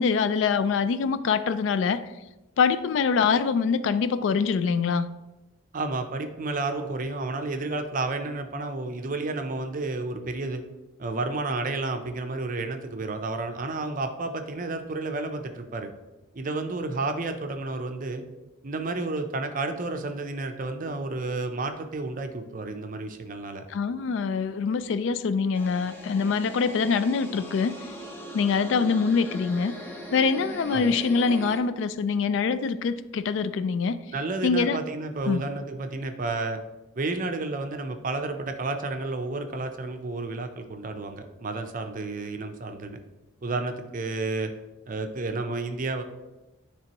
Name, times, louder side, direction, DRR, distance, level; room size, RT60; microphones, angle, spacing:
voice 1, 0.0-2.0 2.6-5.1 23.7-27.7 28.3-29.7 30.1-34.0 34.4-34.8 35.3-35.4, left 5 dB, 65° left, 14 dB, 0.3 m, -24 dB
voice 2, 5.7-10.6 11.0-15.9 16.3-18.2 18.6-23.6 30.7-31.0 34.1-36.6 36.9-43.0 43.4-44.5 44.9-46.0, right 3 dB, 40° right, 6 dB, 0.5 m, -31 dB
sound 1, 25.5-31.6, equal, 10° left, 0.6 m, -40 dB
10.5 x 3.4 x 2.9 m, 1.0 s
head